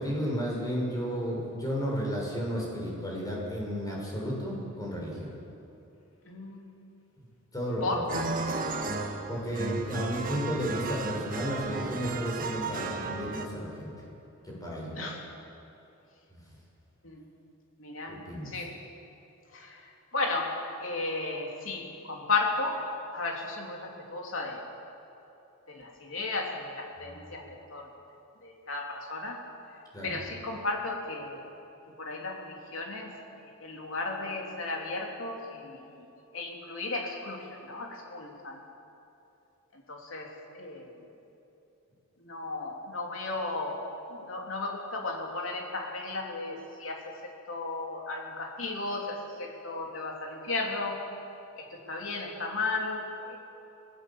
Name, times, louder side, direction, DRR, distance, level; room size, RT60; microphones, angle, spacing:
voice 1, 0.0-5.3 7.5-8.2 9.3-13.9 14.4-15.1 16.3-16.4 18.1-18.5 27.1-27.2 29.9-30.2, equal, 20° left, -3 dB, 6.6 m, -33 dB
voice 2, 6.2-6.7 7.8-8.1 14.9-15.2 17.0-17.3 17.8-18.2 18.4-18.8 19.5-22.8 23.1-24.7 25.7-27.9 28.4-29.4 30.0-31.5 32.0-36.1 36.3-38.6 39.7-40.9 42.2-51.0 51.6-53.4, left 3 dB, 70° left, 0 dB, 3.6 m, -35 dB
sound 1, 8.1-13.5, right 3 dB, 45° right, 1.6 m, -34 dB
26.5 x 18.5 x 7.5 m, 2.9 s
head